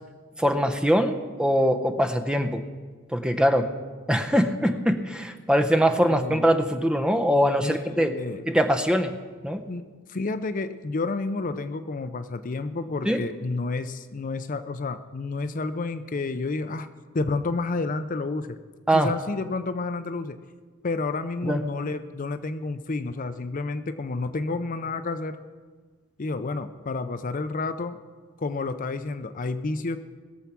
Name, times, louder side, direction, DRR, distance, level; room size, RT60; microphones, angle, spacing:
voice 1, 0.4-2.6 3.1-3.7 4.1-8.2 8.5-9.1 9.4-9.6 13.1-13.2 18.9-19.1 21.4-21.6, equal, 5° right, 6 dB, 0.7 m, -22 dB
voice 2, 6.0-6.4 7.6-8.4 9.7-16.9 17.1-18.6 18.9-20.4 20.8-25.4 26.2-28.0 28.4-30.0, left 3 dB, 40° left, 11 dB, 0.5 m, -30 dB
20.5 x 7.3 x 6.0 m, 1.5 s
head